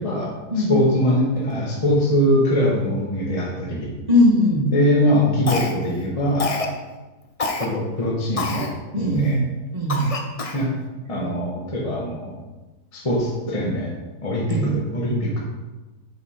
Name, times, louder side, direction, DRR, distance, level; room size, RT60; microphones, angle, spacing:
voice 1, 0.0-0.3 0.7-3.9 4.7-6.5 7.6-8.7 9.0-9.4 10.5-10.7 11.1-12.3 12.9-13.9 14.2-15.4, equal, 20° left, -4 dB, 1.4 m, -22 dB
voice 2, 4.1-4.7 8.9-9.4 9.7-10.1 14.5-14.8, left 1 dB, 25° right, -2 dB, 1.8 m, -19 dB
Cough, 5.5-6.0 6.4-6.8 7.4-7.7 8.4-8.7 9.2-9.3 9.9-10.7, left 3 dB, 40° left, 0.5 m, -26 dB
7.7 x 6.3 x 4.5 m, 1.2 s
omnidirectional pair, 1.8 m